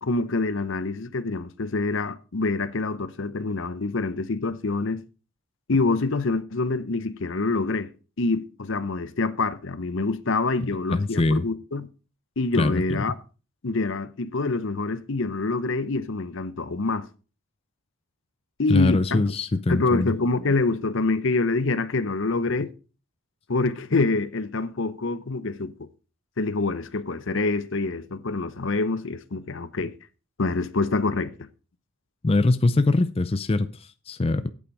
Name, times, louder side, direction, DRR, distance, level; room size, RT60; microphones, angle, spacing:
voice 1, 0.0-5.0 5.7-7.9 8.2-11.9 12.4-13.1 13.6-17.1 18.6-19.2 19.7-22.7 23.5-25.9 26.4-29.9 30.4-31.3, left 3 dB, 55° left, 0.7 m, -26 dB
voice 2, 10.6-11.5 12.6-13.0 18.7-20.1 32.2-34.5, left 2 dB, 25° left, 0.4 m, -23 dB
8.7 x 8.6 x 4.8 m
head